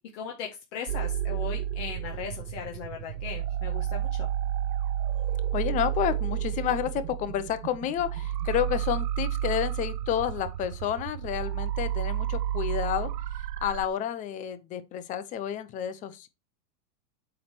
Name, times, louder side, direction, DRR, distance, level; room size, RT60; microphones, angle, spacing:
voice 1, 0.1-4.3, left 7 dB, 50° left, 1.7 m, -38 dB
sound 1, 0.9-13.9, right 11 dB, 80° right, 0.7 m, -31 dB
voice 2, 5.5-13.1 13.6-16.3, left 10 dB, 15° left, 0.5 m, -30 dB
8.6 x 3.2 x 5.9 m
supercardioid pair, 150°, 47 cm